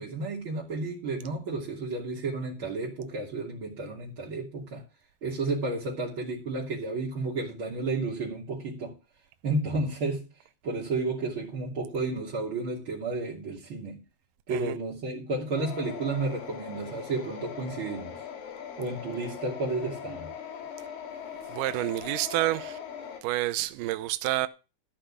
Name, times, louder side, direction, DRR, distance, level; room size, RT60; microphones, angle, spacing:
voice 1, 0.0-4.8 5.2-8.9 9.4-10.3 10.6-14.0 14.5-18.2 18.8-20.3, right 3 dB, 35° right, 3.3 m, -32 dB
sound 1, 15.6-23.2, left 8 dB, 65° left, 3.9 m, -40 dB
voice 2, 21.5-22.8 23.2-24.5, right 16 dB, 75° right, 2.1 m, -29 dB
13.5 x 5.0 x 8.7 m
omnidirectional pair, 4.4 m